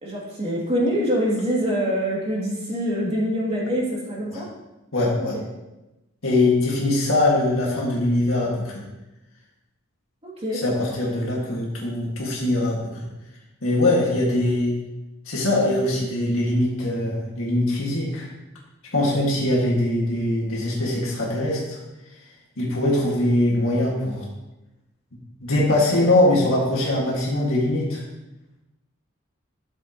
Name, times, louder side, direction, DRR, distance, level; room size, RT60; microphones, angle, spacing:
voice 1, 0.0-4.5 5.3-5.4 10.2-10.6, equal, 30° right, -4 dB, 2.7 m, -25 dB
voice 2, 4.9-5.4 6.2-8.8 10.5-12.8 13.6-14.7 15.3-18.3 18.9-21.8 22.6-24.3 25.4-28.0, left 1 dB, 70° left, -4 dB, 2.1 m, -22 dB
12.5 x 7.6 x 3.1 m, 0.98 s
head